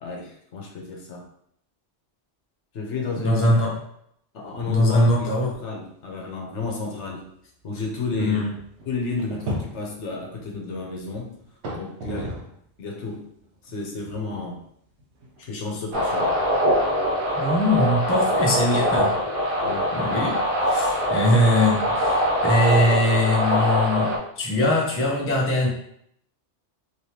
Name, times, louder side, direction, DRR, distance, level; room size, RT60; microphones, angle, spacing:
voice 1, 0.0-1.2 2.7-3.6 4.3-5.3 5.6-7.2 7.6-8.5 8.9-11.3 11.7-12.4 12.8-13.2 13.6-14.6 15.4-16.3 19.6-19.9, left 3 dB, 80° left, 0 dB, 1.1 m, -32 dB
voice 2, 3.2-3.8 4.7-5.5 8.2-8.5 17.3-19.1 19.9-20.4 20.6-25.7, left 1 dB, 15° left, -2 dB, 0.5 m, -21 dB
sound 1, 4.4-4.9 5.2-5.3 6.0-6.1 6.6-12.7 13.0-17.3, right 1 dB, 85° right, 1.1 m, -38 dB
sound 2, 15.9-24.2, equal, 55° right, 0.9 m, -23 dB
3.2 x 3.0 x 2.8 m, 0.70 s
omnidirectional pair, 1.2 m